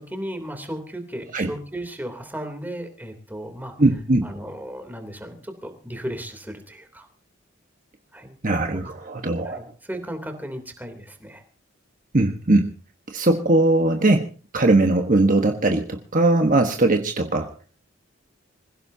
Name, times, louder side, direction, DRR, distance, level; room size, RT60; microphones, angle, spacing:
voice 1, 0.0-3.8 4.2-7.1 8.1-8.3 9.4-11.4, equal, 10° right, 6 dB, 3.1 m, -35 dB
voice 2, 3.8-4.3 8.4-9.6 12.1-12.7 13.1-17.5, right 2 dB, 40° right, 4 dB, 1.3 m, -20 dB
26.5 x 16.0 x 2.8 m, 0.36 s
head